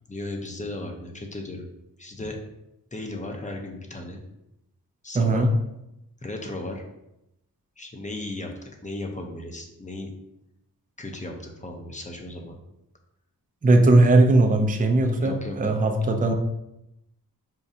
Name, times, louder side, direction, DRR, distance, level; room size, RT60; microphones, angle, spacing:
voice 1, 0.1-1.7 2.0-2.4 2.9-4.2 5.0-5.5 6.2-6.8 7.8-10.1 11.0-12.6 15.1-15.6, left 2 dB, 20° left, 3 dB, 0.7 m, -36 dB
voice 2, 5.1-5.5 13.6-16.3, right 2 dB, 20° right, 3 dB, 0.5 m, -19 dB
5.2 x 2.3 x 2.7 m, 0.87 s
cardioid pair, 60°, 37 cm